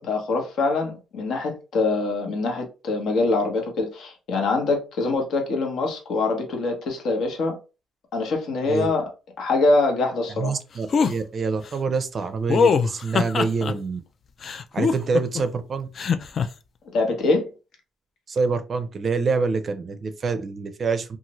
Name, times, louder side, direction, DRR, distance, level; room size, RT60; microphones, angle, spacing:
voice 1, 0.0-7.6 8.1-9.1 9.4-10.6 16.9-17.5, left 3 dB, 70° left, 1.0 m, -24 dB
voice 2, 10.4-14.0 14.7-15.9 18.3-21.2, right 4 dB, 45° right, 0.4 m, -26 dB
sound 1, 10.9-11.1 12.5-13.7 14.4-15.4 16.0-16.5, left 5 dB, 50° left, 0.3 m, -21 dB
2.6 x 2.4 x 3.0 m
cardioid pair, 85°, 0 cm